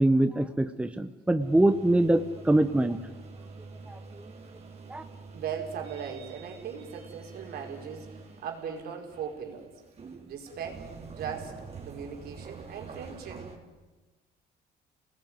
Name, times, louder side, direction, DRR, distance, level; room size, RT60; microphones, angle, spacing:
voice 1, 0.0-3.0 3.9-4.3 4.9-5.0, right 1 dB, 5° right, 9 dB, 1.1 m, -24 dB
sound 1, 1.4-13.6, right 4 dB, 40° right, 4.5 m, -46 dB
voice 2, 5.3-9.7 10.3-10.9 11.2-11.6 11.9-13.5, right 7 dB, 65° right, 2 dB, 5.0 m, -38 dB
30.0 x 19.5 x 9.6 m, 1.2 s
cardioid pair, 110°, 17 cm